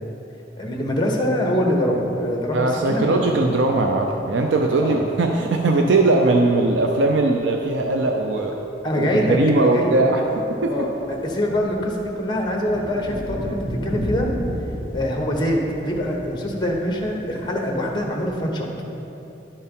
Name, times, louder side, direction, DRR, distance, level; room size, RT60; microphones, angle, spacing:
voice 1, 0.6-2.6 2.9-3.2 4.8-5.0 8.8-9.9 10.7-10.9 11.2-14.3 14.9-18.7, equal, 25° left, 1 dB, 1.1 m, -24 dB
sound 1, 1.6-2.1 2.5-4.5 5.1-5.2 5.4-5.5 5.8-6.0 6.5-7.3 7.6-18.3, equal, 70° right, 2.0 m, -34 dB
voice 2, 2.5-8.6 9.0-10.9, right 2 dB, 85° right, 2 dB, 0.5 m, -20 dB
11.0 x 4.4 x 5.3 m, 2.9 s
head